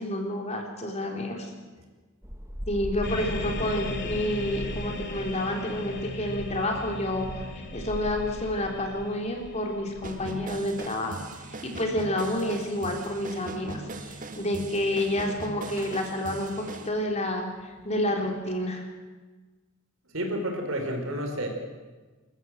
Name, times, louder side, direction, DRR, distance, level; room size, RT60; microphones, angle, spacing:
voice 1, 0.0-1.5 2.7-11.2 11.6-18.9, left 1 dB, 35° left, 2 dB, 3.6 m, -29 dB
sound 1, 2.2-18.6, equal, 15° right, 1.8 m, -43 dB
sound 2, 3.0-13.0, left 2 dB, 55° left, 3.0 m, -38 dB
sound 3, 10.0-16.9, right 2 dB, 40° right, 1.8 m, -40 dB
voice 2, 20.1-21.5, right 1 dB, 85° right, 3 dB, 4.8 m, -30 dB
26.5 x 14.0 x 8.1 m, 1.3 s
head